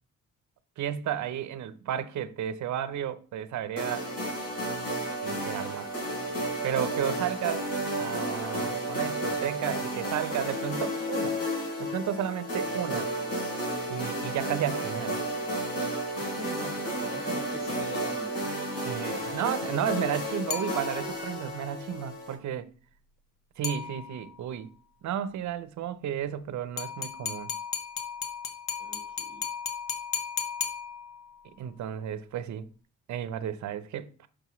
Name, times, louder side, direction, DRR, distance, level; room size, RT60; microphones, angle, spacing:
voice 1, 0.8-4.1 5.2-5.9 6.6-11.4 11.8-13.1 13.9-15.2 18.8-22.7 23.6-24.7 25.0-27.5 31.4-32.7 33.1-34.1, right 10 dB, 65° right, 0.7 m, -33 dB
sound 1, 3.8-22.3, right 1 dB, 50° left, 3.7 m, -32 dB
voice 2, 16.2-18.5 28.8-29.4, equal, 20° left, 3.6 m, -43 dB
sound 2, 20.5-21.3 23.6-24.4 26.8-31.4, left 7 dB, 85° left, 1.0 m, -35 dB
6.2 x 6.0 x 3.1 m
cardioid pair, 95°, 32 cm